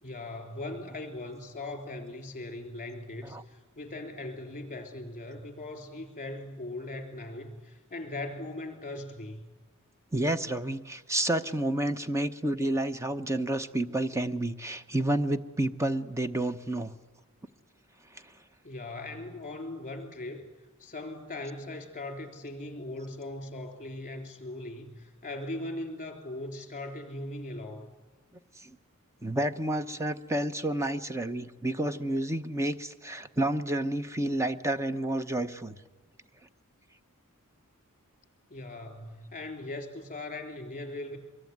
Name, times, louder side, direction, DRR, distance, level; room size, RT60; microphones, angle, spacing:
voice 1, 0.0-9.4 18.6-20.5 20.8-27.9 38.5-41.2, left 2 dB, 35° left, 6 dB, 3.6 m, -39 dB
voice 2, 10.1-16.9 18.1-18.2 28.6-28.8 29.2-35.8, right 1 dB, 15° right, 10 dB, 0.8 m, -30 dB
24.5 x 22.0 x 9.4 m, 1.3 s
head